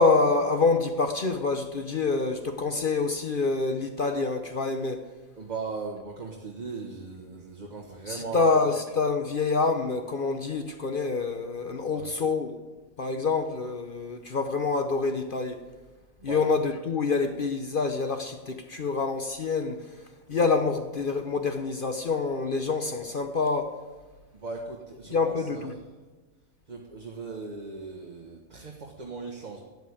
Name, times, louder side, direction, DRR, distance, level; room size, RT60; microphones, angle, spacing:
voice 1, 0.0-5.0 8.1-12.6 13.0-15.6 16.2-19.9 20.3-23.8 25.1-25.7, left 4 dB, 45° left, 0.9 m, -26 dB
voice 2, 5.4-8.7 11.8-12.1 16.2-16.5 24.3-25.7 26.7-29.6, right 4 dB, 30° right, 1.4 m, -38 dB
12.5 x 9.6 x 8.5 m
omnidirectional pair, 1.5 m